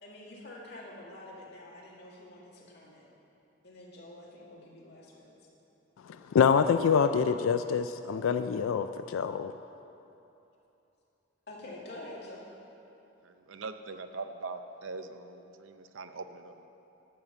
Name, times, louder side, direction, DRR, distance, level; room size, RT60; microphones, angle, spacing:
voice 1, 0.0-3.1 3.6-5.3 11.5-12.4, left 1 dB, 55° left, -4 dB, 2.1 m, -47 dB
voice 2, 6.0-9.5, left 6 dB, 85° left, 9 dB, 0.3 m, -26 dB
voice 3, 13.2-16.7, right 3 dB, 75° right, 9 dB, 0.6 m, -42 dB
12.0 x 5.7 x 8.0 m, 2.9 s
head